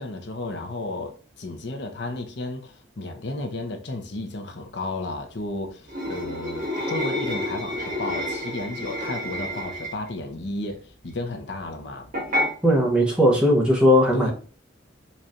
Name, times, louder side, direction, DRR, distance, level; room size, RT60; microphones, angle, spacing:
voice 1, 0.0-12.1 14.1-14.3, left 2 dB, 65° left, 0.7 m, -33 dB
sound 1, 5.9-10.1 12.1-12.5, left 1 dB, 45° right, 1.4 m, -29 dB
voice 2, 12.6-14.3, equal, 5° right, 0.9 m, -18 dB
4.1 x 3.2 x 2.4 m
head